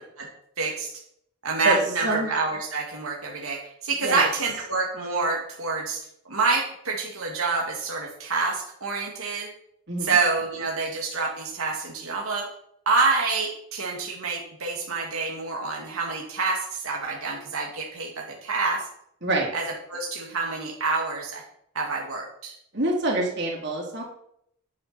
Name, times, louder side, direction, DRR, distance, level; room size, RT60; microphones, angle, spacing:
voice 1, 0.6-0.9 1.4-6.0 6.3-9.5 10.0-12.4 12.9-18.8 19.5-19.6 19.9-21.4 21.7-22.5, right 4 dB, 85° right, -1 dB, 2.3 m, -27 dB
voice 2, 1.6-2.3 4.0-4.3 9.9-10.2 19.2-19.5 22.7-24.0, right 2 dB, 55° right, -1 dB, 3.4 m, -26 dB
11.0 x 10.5 x 4.4 m, 0.70 s
head